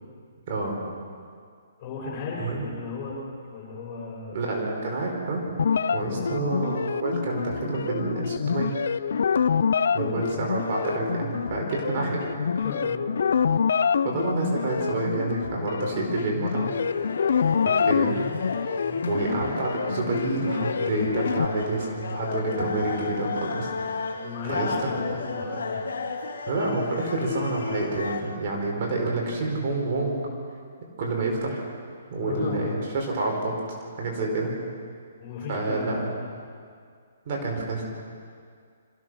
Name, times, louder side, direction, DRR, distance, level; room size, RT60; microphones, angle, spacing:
voice 1, 0.5-0.8 2.4-2.7 4.3-5.4 5.9-8.7 9.9-12.3 14.0-16.7 17.6-18.2 19.1-23.7 24.0-24.7 26.5-30.3 31.0-31.6 32.1-34.5 35.5-36.1 37.2-37.8, right 2 dB, 40° right, -1 dB, 4.9 m, -28 dB
voice 2, 1.8-4.6 5.9-6.2 9.9-10.2 12.6-13.0 18.8-19.0 24.1-25.9 32.2-32.7 35.2-36.0, left 4 dB, 35° left, -4 dB, 7.5 m, -36 dB
sound 1, 5.6-21.4, left 6 dB, 70° left, 0.5 m, -27 dB
sound 2, 16.7-28.2, left 4 dB, 90° left, 3.1 m, -33 dB
26.5 x 16.0 x 6.5 m, 2.1 s
hypercardioid pair, 160°, 0 cm